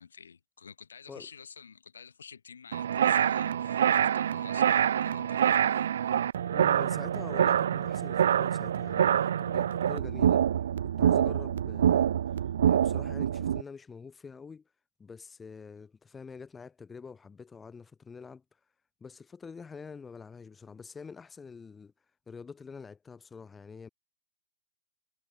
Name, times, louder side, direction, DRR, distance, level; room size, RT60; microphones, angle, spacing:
voice 1, 0.0-5.9, left 6 dB, 90° left, 3.6 m, -50 dB
sound 1, 2.7-13.6, right 9 dB, 75° right, 0.4 m, -26 dB
voice 2, 6.5-10.4 10.8-12.2 12.6-14.6 15.0-18.4 19.0-21.9 22.3-23.9, left 5 dB, 15° left, 0.7 m, -46 dB
hypercardioid pair, 120°, 0 cm